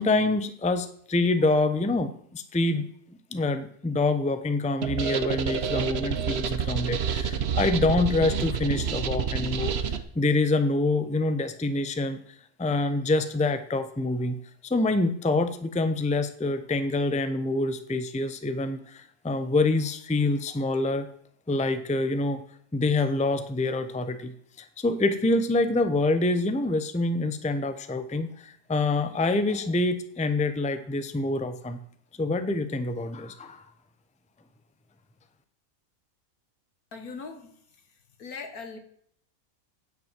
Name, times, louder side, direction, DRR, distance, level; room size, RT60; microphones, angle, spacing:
voice 1, 0.0-12.2 12.6-14.4 14.6-21.1 21.5-22.4 22.7-31.8 32.2-33.6, left 2 dB, 5° left, 10 dB, 0.6 m, -26 dB
sound 1, 4.8-10.0, right 7 dB, 50° right, 1.0 m, -28 dB
voice 2, 36.9-37.5 37.8-38.8, left 4 dB, 85° left, 7 dB, 2.0 m, -40 dB
9.5 x 7.8 x 7.5 m, 0.63 s
omnidirectional pair, 1.5 m